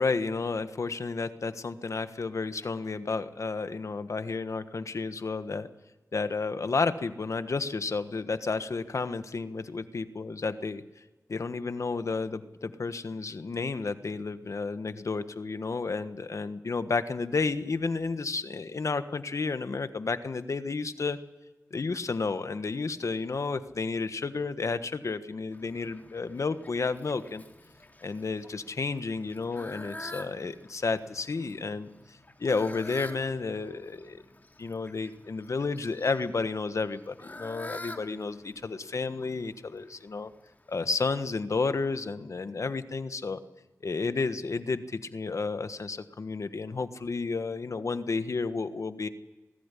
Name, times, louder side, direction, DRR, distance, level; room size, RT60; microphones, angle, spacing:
voice 1, 0.0-5.7 6.1-10.8 11.3-21.2 21.7-27.4 28.0-31.9 32.4-34.2 34.6-40.3 40.7-43.4 43.8-49.1, left 4 dB, 70° left, 11 dB, 1.4 m, -31 dB
Fowl, 25.5-40.9, left 1 dB, 30° left, 3.2 m, -48 dB
21.5 x 13.5 x 10.0 m, 1.2 s
cardioid pair, 45°, 5 cm